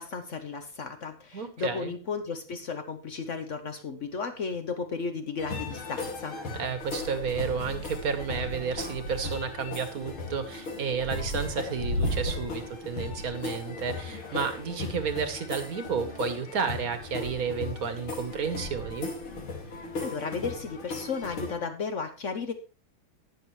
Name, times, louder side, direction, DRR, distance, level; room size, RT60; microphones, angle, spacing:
voice 1, 0.0-6.4 20.0-22.5, left 5 dB, 55° left, 8 dB, 0.8 m, -34 dB
voice 2, 1.3-1.9 6.5-19.1, right 6 dB, 50° right, 10 dB, 1.5 m, -32 dB
sound 1, 5.4-21.6, left 2 dB, 85° left, 3.2 m, -36 dB
19.0 x 6.7 x 3.2 m, 0.33 s
omnidirectional pair, 2.2 m